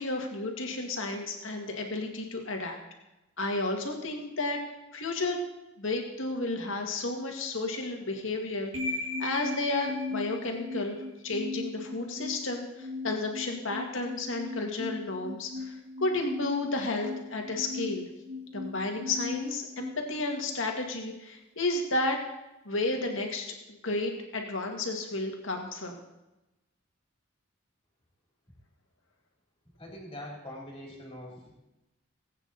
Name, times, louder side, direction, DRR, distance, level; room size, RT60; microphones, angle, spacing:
voice 1, 0.0-2.8 3.4-4.6 4.9-5.4 5.8-8.7 9.2-18.1 18.5-22.2 22.7-26.0, left 2 dB, 70° left, 2 dB, 2.1 m, -32 dB
sound 1, 8.7-20.8, left 3 dB, 75° right, 2.0 m, -38 dB
voice 2, 29.8-31.5, left 1 dB, 25° left, -2 dB, 3.3 m, -43 dB
19.5 x 8.9 x 4.1 m, 0.97 s
head